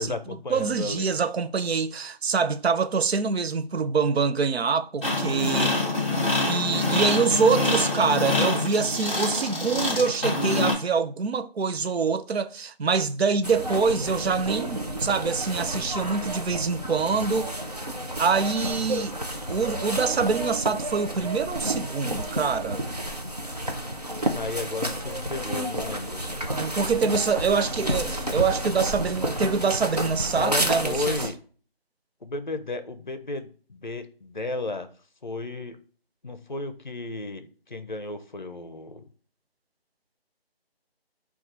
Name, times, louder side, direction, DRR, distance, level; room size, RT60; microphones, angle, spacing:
voice 1, 0.0-1.1 24.3-26.2 30.4-31.4 32.2-34.9 35.2-35.8 36.2-39.1, left 2 dB, 50° left, 0.5 m, -33 dB
voice 2, 0.5-5.7 6.5-17.5 18.2-19.1 19.5-22.8 26.5-31.2, right 5 dB, 90° right, 0.6 m, -25 dB
sound 1, 5.0-10.7, left 2 dB, 15° right, 1.2 m, -25 dB
Quebrada La Vieja - Voces de caminantes con sus pasos, 13.4-31.3, right 1 dB, 40° right, 0.6 m, -30 dB
3.9 x 2.4 x 4.5 m
figure-of-eight pair, 180°, 31 cm